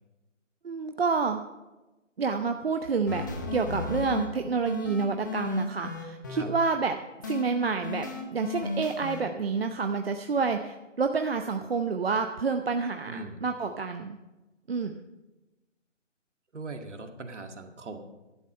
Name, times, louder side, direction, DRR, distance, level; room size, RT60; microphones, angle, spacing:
voice 1, 0.6-1.4 2.2-7.0 7.3-8.1 8.3-14.2 14.7-15.0, right 5 dB, 50° right, 6 dB, 0.8 m, -28 dB
sound 1, 3.1-4.3 4.7-6.4 7.2-7.4 7.8-9.2, left 4 dB, 15° left, 0.8 m, -34 dB
voice 2, 13.1-13.4 16.5-18.0, right 3 dB, 65° right, 5 dB, 2.0 m, -40 dB
11.5 x 11.0 x 5.5 m, 1.1 s
figure-of-eight pair, 160°, 38 cm